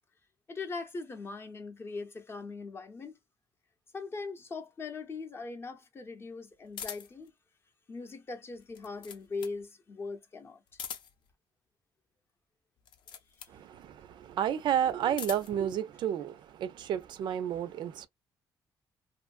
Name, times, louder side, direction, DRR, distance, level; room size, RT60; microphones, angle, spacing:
voice 1, 0.5-3.2 3.9-7.3 7.9-10.6, left 4 dB, 30° left, 0.6 m, -40 dB
sound 1, 6.7-7.3 8.6-9.6 10.7-11.3 12.8-13.6 14.8-15.6, left 8 dB, 70° left, 0.6 m, -43 dB
voice 2, 13.5-18.1, right 9 dB, 65° right, 0.4 m, -31 dB
2.6 x 2.5 x 2.3 m
cardioid pair, 145°, 8 cm